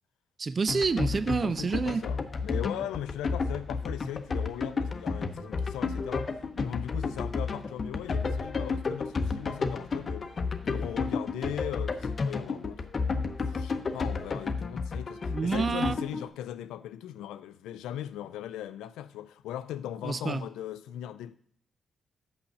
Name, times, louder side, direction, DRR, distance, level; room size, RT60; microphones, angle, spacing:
voice 1, 0.4-2.0 15.3-16.0 20.0-20.4, right 4 dB, 50° right, 0.4 m, -28 dB
sound 1, 0.7-16.2, left 4 dB, 50° left, 0.7 m, -31 dB
voice 2, 1.3-10.3 10.6-12.9 13.4-21.4, left 11 dB, 85° left, 0.3 m, -39 dB
6.0 x 5.0 x 6.6 m
hypercardioid pair, 45°, 0 cm